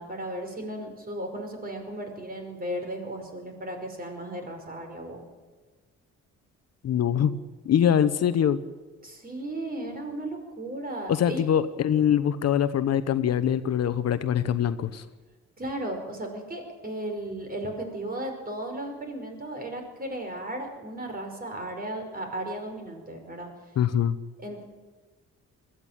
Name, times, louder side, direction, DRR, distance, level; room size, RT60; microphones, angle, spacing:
voice 1, 0.0-5.2 9.0-11.4 15.6-23.5 24.4-24.6, right 1 dB, 30° right, 4 dB, 5.3 m, -35 dB
voice 2, 6.8-7.3 7.6-8.6 11.1-15.0 23.8-24.2, left 9 dB, 60° left, 12 dB, 0.9 m, -23 dB
21.0 x 14.0 x 8.9 m, 1.3 s
cardioid pair, 90°, 30 cm